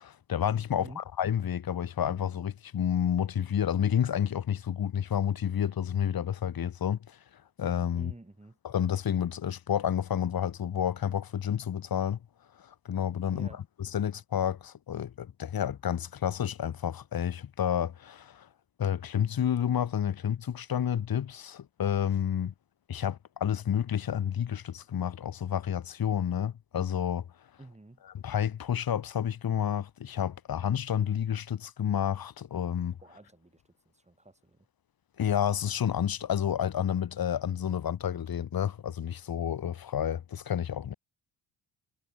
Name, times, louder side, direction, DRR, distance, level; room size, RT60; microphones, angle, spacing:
voice 1, 0.0-7.2 7.6-8.1 8.6-12.2 12.6-13.5 13.8-18.5 18.8-22.5 22.9-27.2 28.1-33.0 35.2-40.9, left 9 dB, 50° left, 1.7 m, -30 dB
voice 2, 0.7-1.0 7.9-8.6 13.3-13.6 27.6-28.0 33.0-33.6 33.9-34.7, right 2 dB, 15° right, 4.9 m, -49 dB
hypercardioid pair, 50°, 47 cm